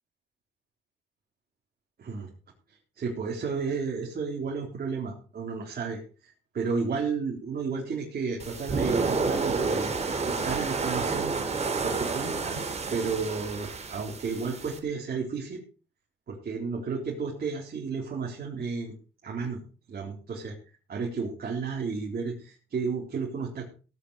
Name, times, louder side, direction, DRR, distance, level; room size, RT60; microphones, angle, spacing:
voice 1, 2.0-2.3 2.7-9.9 10.3-11.3 11.6-12.6 12.9-15.6 16.3-18.9 19.2-19.6 19.9-20.6 20.9-23.7, right 5 dB, 50° right, -2 dB, 3.9 m, -32 dB
sound 1, 8.4-14.8, right 4 dB, 35° right, 3.2 m, -30 dB
16.5 x 9.4 x 4.9 m, 0.37 s
cardioid pair, 90°, 20 cm